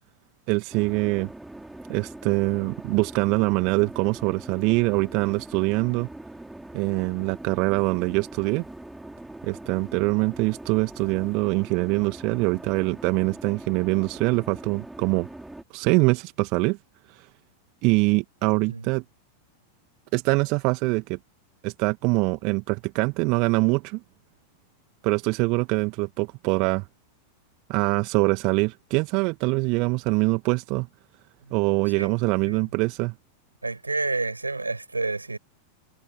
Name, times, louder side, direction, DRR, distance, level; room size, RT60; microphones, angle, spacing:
voice 1, 0.5-1.3 1.9-6.1 6.7-8.6 9.4-15.3 15.7-16.8 17.1-17.3 17.8-19.0 20.1-21.2 21.6-24.0 25.0-26.9 27.7-30.9 31.5-33.1, right 28 dB, 45° right, 1.9 m, -24 dB
sound 1, 0.7-15.6, right 1 dB, 5° right, 6.0 m, -42 dB
voice 2, 32.0-32.6 33.6-35.4, right 3 dB, 80° right, 8.0 m, -30 dB
figure-of-eight pair, 90°, 0 cm